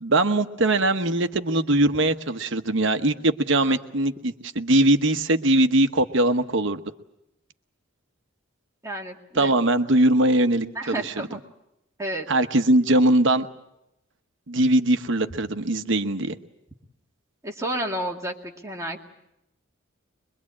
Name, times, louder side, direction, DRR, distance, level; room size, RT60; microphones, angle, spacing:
voice 1, 0.0-6.8 9.3-11.3 12.3-13.5 14.5-16.3, right 1 dB, 60° right, 8 dB, 1.1 m, -21 dB
voice 2, 8.8-9.6 10.7-11.4 12.0-12.3 17.4-19.0, right 1 dB, 15° right, 0 dB, 2.2 m, -31 dB
23.5 x 23.0 x 8.6 m, 0.85 s
head